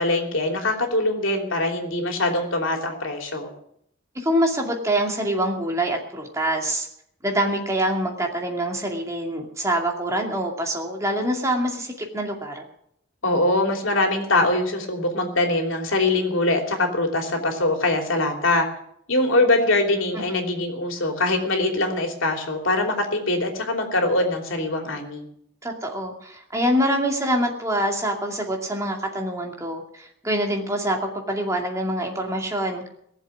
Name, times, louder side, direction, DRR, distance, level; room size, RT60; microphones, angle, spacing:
voice 1, 0.0-3.5 13.2-18.7 19.1-25.2, left 2 dB, 85° left, 3 dB, 3.1 m, -23 dB
voice 2, 4.1-6.9 7.2-12.6 20.1-20.2 25.6-32.8, right 1 dB, 15° right, 1 dB, 2.5 m, -25 dB
19.0 x 7.5 x 9.3 m, 0.72 s
head